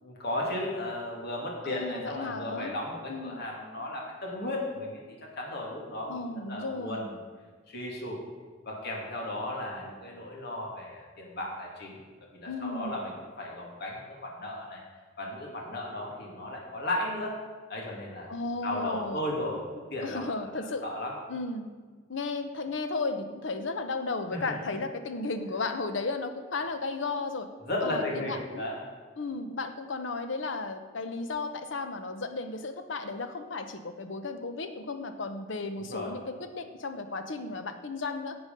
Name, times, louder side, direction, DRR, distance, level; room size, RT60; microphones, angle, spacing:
voice 1, 0.0-5.0 5.4-6.2 6.5-7.1 7.7-8.2 8.6-12.0 12.3-14.8 15.2-17.4 17.7-18.3 18.6-19.6 19.9-21.1 24.3-24.5 27.6-28.8 35.7-36.1, left 1 dB, 55° left, -2 dB, 2.2 m, -35 dB
voice 2, 1.6-2.7 3.1-3.4 6.1-7.1 12.5-13.0 18.3-19.2 20.0-20.8 21.3-21.7 22.1-27.5 27.8-28.7 29.2-38.4, left 3 dB, 75° left, 8 dB, 0.9 m, -34 dB
10.5 x 8.0 x 5.3 m, 1.5 s
head